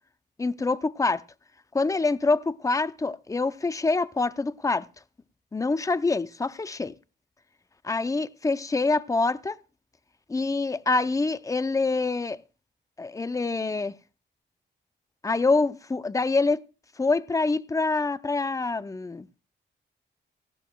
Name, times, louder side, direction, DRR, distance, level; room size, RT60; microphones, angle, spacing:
voice 1, 0.4-1.2 1.7-4.9 5.5-6.9 7.8-9.6 10.3-12.4 13.0-14.0 15.2-16.6 17.0-19.3, left 3 dB, 15° left, 0.5 m, -25 dB
18.0 x 14.5 x 2.3 m
cardioid pair, 85°, 19 cm